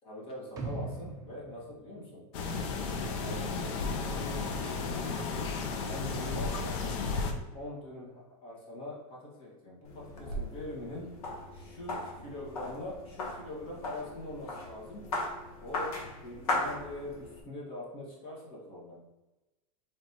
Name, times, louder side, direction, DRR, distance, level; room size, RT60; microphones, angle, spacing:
voice 1, 0.0-2.2 3.0-5.5 5.8-7.0 7.5-11.1 11.5-15.0 15.6-16.0 16.2-19.0, left 1 dB, 30° left, -3 dB, 1.4 m, -43 dB
sound 1, 0.6-2.7 3.1-3.2, right 3 dB, 20° right, 0.6 m, -41 dB
sound 2, 2.3-7.3, left 4 dB, 55° left, 0.7 m, -33 dB
sound 3, 9.8-17.4, left 2 dB, 85° left, 1.1 m, -38 dB
3.4 x 3.0 x 4.1 m, 1.1 s
supercardioid pair, 140°, 19 cm